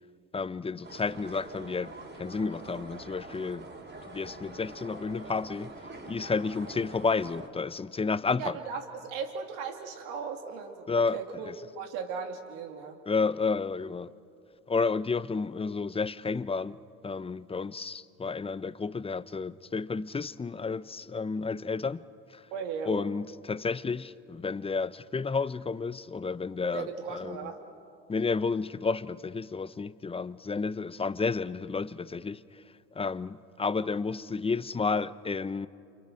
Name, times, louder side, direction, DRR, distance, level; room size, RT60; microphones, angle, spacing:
voice 1, 0.3-3.7 4.1-5.7 6.1-8.5 10.9-11.2 11.4-11.5 13.1-14.1 14.7-16.8 17.0-22.0 22.3-22.4 22.9-27.5 28.1-32.4 32.9-35.7, left 4 dB, 15° left, 0.7 m, -31 dB
sound 1, 0.8-7.5, right 2 dB, 30° right, 4.4 m, -45 dB
voice 2, 8.4-13.0 22.5-22.9 26.6-27.6, right 6 dB, 70° right, 2.8 m, -37 dB
28.5 x 25.0 x 6.4 m
hypercardioid pair, 70°, 38 cm